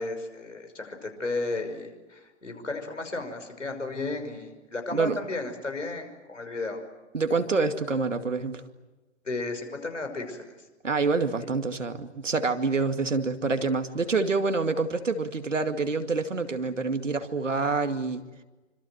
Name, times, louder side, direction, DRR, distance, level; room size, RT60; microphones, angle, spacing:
voice 1, 0.0-6.8 9.2-10.5, left 3 dB, 85° left, 6 dB, 5.9 m, -34 dB
voice 2, 7.1-8.6 10.8-18.2, right 4 dB, 85° right, 7 dB, 2.3 m, -27 dB
26.5 x 25.5 x 7.9 m, 1.1 s
figure-of-eight pair, 110°, 36 cm